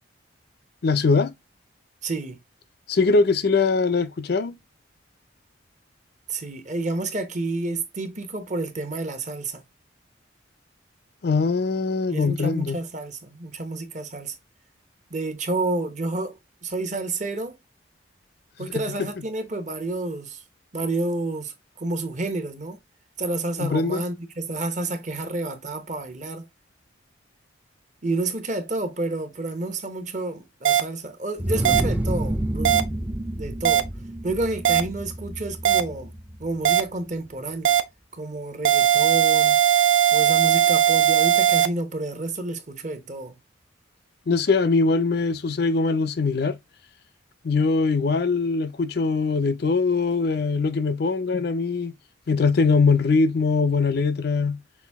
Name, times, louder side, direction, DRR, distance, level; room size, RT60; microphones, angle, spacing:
voice 1, 0.8-1.3 2.9-4.5 11.2-12.8 18.6-18.7 23.6-24.0 44.3-46.6 47.4-51.9 52.3-54.6, left 4 dB, 55° left, 0.4 m, -22 dB
voice 2, 2.0-2.4 6.3-9.6 12.1-14.4 15.1-17.6 18.6-20.4 20.7-22.8 23.2-26.5 28.0-32.9 33.4-33.9 34.2-36.1 36.4-37.8 38.1-39.6 40.1-43.4, right 2 dB, 40° right, 0.9 m, -30 dB
beep beep beep beeeeeeeeee, 30.6-30.8 31.6-31.8 32.6-32.8 33.6-33.8 34.6-34.8 35.6-35.8 36.6-36.8 37.6-37.8 38.6-41.7, right 11 dB, 75° right, 0.5 m, -18 dB
sound 1, 31.4-36.9, right 1 dB, 10° right, 0.4 m, -29 dB
5.8 x 2.6 x 3.4 m
head